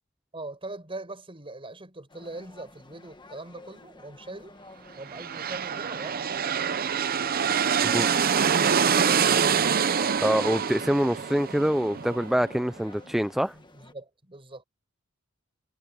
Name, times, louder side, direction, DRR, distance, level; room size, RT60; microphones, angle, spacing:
voice 1, 0.3-4.6 5.0-7.0 13.5-14.6, right 2 dB, 25° right, 6.1 m, -42 dB
sound 1, 2.1-13.9, left 2 dB, 20° left, 1.4 m, -51 dB
sound 2, 5.0-12.7, right 7 dB, 45° right, 0.7 m, -25 dB
voice 2, 10.2-13.6, equal, ahead, 0.5 m, -25 dB
head